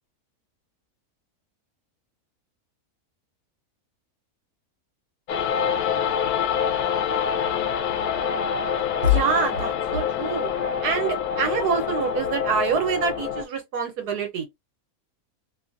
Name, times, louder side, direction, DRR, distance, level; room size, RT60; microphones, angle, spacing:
sound 1, 5.3-13.4, left 7 dB, 75° left, 1.0 m, -26 dB
voice 1, 9.0-10.5 10.8-14.5, right 2 dB, 85° right, 1.5 m, -25 dB
3.0 x 2.4 x 2.5 m
omnidirectional pair, 1.6 m